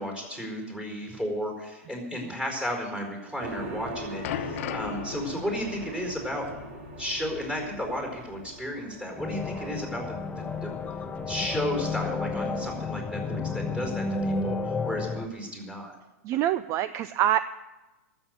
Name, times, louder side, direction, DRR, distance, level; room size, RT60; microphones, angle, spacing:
voice 1, 0.0-6.5 7.0-10.7 11.2-15.9, equal, 10° right, 1 dB, 4.7 m, -33 dB
sound 1, 3.4-13.5, right 2 dB, 70° right, 2.9 m, -43 dB
sound 2, 3.6-8.5 8.8-9.0 9.7-9.8, left 10 dB, 70° left, 1.0 m, -39 dB
sound 3, 9.2-15.3, left 3 dB, 15° left, 0.8 m, -31 dB
voice 2, 16.2-17.4, right 12 dB, 40° right, 14 dB, 0.4 m, -25 dB
13.0 x 7.8 x 9.5 m, 1.1 s
hypercardioid pair, 115°, 8 cm